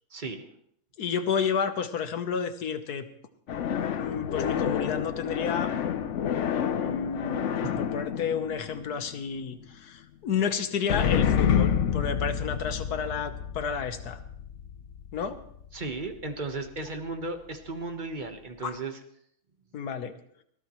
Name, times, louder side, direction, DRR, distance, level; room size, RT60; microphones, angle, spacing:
voice 1, 0.1-0.5 7.6-7.8 15.7-19.0, right 3 dB, 30° right, 6 dB, 1.2 m, -35 dB
voice 2, 1.0-3.1 4.0-5.7 6.8-14.2 15.1-15.4 18.6-18.8 19.7-20.1, left 6 dB, 55° left, 9 dB, 1.5 m, -31 dB
sound 1, 3.5-9.4 10.9-16.2, left 8 dB, 80° left, 0.6 m, -29 dB
22.0 x 15.0 x 3.1 m, 0.69 s
omnidirectional pair, 2.2 m